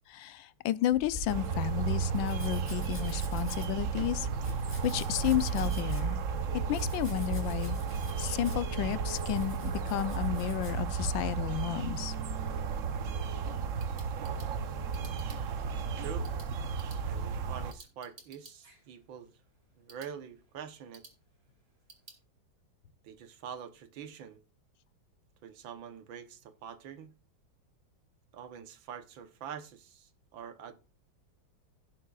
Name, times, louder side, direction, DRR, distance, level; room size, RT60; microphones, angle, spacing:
voice 1, 0.1-4.3 4.8-6.2 6.7-7.8 8.2-12.1, left 13 dB, 80° left, 1.4 m, -32 dB
Domestic sounds home sounds, 0.9-11.1, left 1 dB, 10° left, 3.7 m, -48 dB
sound 1, 1.3-17.7, right 5 dB, 55° right, 0.9 m, -33 dB
sound 2, 13.7-22.2, right 2 dB, 30° right, 2.6 m, -58 dB
voice 2, 16.0-16.3 17.0-19.3 19.8-21.0 23.0-24.4 25.4-27.1 28.3-30.7, right 8 dB, 90° right, 1.8 m, -45 dB
17.0 x 7.5 x 2.4 m
omnidirectional pair, 2.1 m